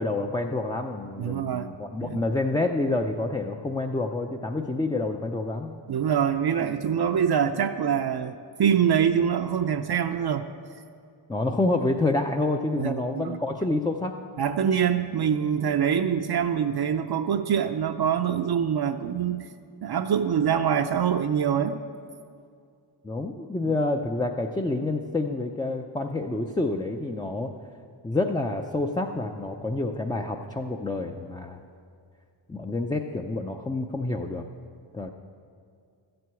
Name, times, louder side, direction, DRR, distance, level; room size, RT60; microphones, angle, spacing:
voice 1, 0.0-5.8 11.3-14.1 23.0-27.5 28.0-31.6 32.5-34.4 34.9-35.1, left 2 dB, 10° left, 3 dB, 0.4 m, -28 dB
voice 2, 1.2-1.7 2.0-2.2 5.9-10.5 12.8-13.4 14.4-19.5 19.8-21.8 23.7-23.8, right 8 dB, 55° right, 6 dB, 0.5 m, -25 dB
13.0 x 7.8 x 8.2 m, 2.3 s
wide cardioid pair, 125°, 47 cm